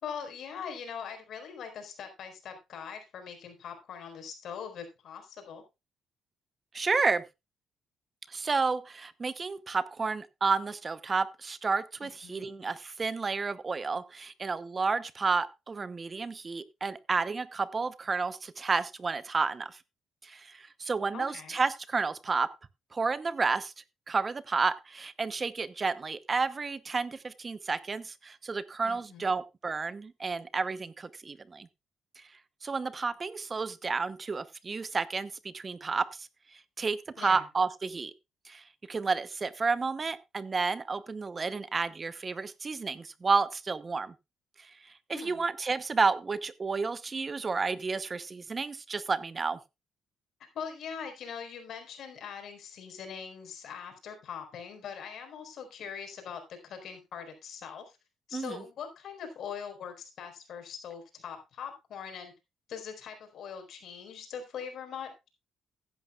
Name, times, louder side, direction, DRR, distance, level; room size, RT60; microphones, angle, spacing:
voice 1, 0.0-5.6 12.0-12.4 21.1-21.6 28.8-29.3 37.2-37.5 45.1-45.4 50.5-58.0 58.3-62.3 62.7-65.3, left 7 dB, 70° left, 5 dB, 4.5 m, -42 dB
voice 2, 6.7-7.2 8.3-19.8 20.2-22.5 22.9-23.7 24.1-31.7 32.2-32.3 32.6-38.1 38.5-44.1 45.1-49.6 58.3-58.6, right 4 dB, 35° right, 15 dB, 0.8 m, -31 dB
15.0 x 11.0 x 2.4 m, 0.24 s
cardioid pair, 90°, 0 cm